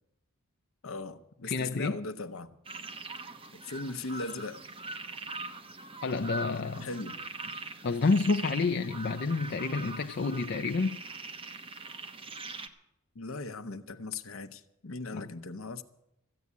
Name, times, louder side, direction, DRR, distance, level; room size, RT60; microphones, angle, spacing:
voice 1, 0.8-2.5 3.5-4.6 6.8-7.1 13.1-15.8, left 3 dB, 70° left, 0.9 m, -38 dB
voice 2, 1.5-2.0 6.0-6.9 7.8-11.0 15.1-15.3, left 3 dB, 50° left, 0.5 m, -29 dB
sound 1, 2.7-12.7, right 3 dB, 25° right, 1.0 m, -42 dB
15.0 x 8.5 x 9.5 m
head